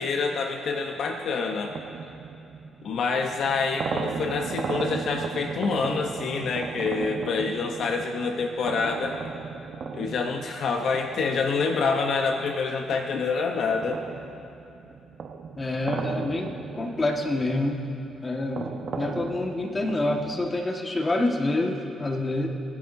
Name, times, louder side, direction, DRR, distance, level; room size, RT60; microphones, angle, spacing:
voice 1, 0.0-1.8 2.8-9.2 9.9-14.0, left 4 dB, 65° left, 3 dB, 0.9 m, -27 dB
sound 1, 0.7-12.4 12.9-20.6, right 5 dB, 55° right, 1.0 m, -36 dB
voice 2, 15.6-17.9 18.2-22.5, left 2 dB, 25° left, 1 dB, 1.6 m, -27 dB
29.0 x 9.7 x 2.7 m, 2.9 s
cardioid pair, 90°, 0 cm